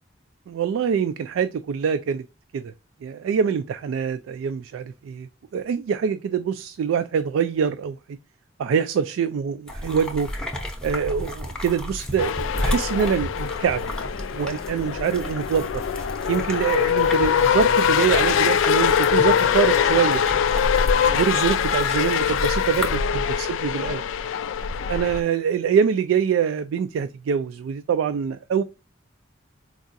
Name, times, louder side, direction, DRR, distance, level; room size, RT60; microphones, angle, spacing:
voice 1, 0.5-2.2 2.5-2.7 3.0-8.0 8.6-10.3 10.8-13.8 14.3-15.7 16.3-20.2 20.8-24.0 24.9-28.6, right 7 dB, 85° right, 0.3 m, -24 dB
sound 1, 9.7-23.0, left 1 dB, 5° left, 0.6 m, -33 dB
sound 2, 12.2-25.2, left 7 dB, 85° left, 0.3 m, -23 dB
4.6 x 2.4 x 2.5 m
head